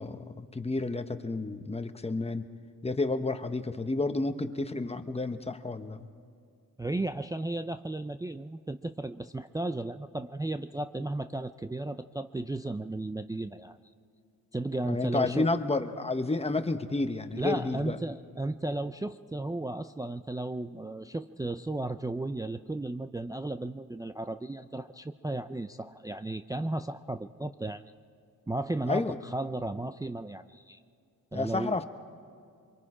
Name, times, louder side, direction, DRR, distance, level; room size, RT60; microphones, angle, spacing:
voice 1, 0.0-2.5 2.8-6.1 14.8-18.0 28.9-29.2 31.3-31.8, left 2 dB, 15° left, 8 dB, 1.0 m, -31 dB
voice 2, 6.8-13.8 14.5-15.5 17.4-27.8 28.5-30.8 31.3-31.8, right 2 dB, 10° right, 8 dB, 0.4 m, -34 dB
24.5 x 23.5 x 5.0 m, 2.4 s
cardioid pair, 90°, 35 cm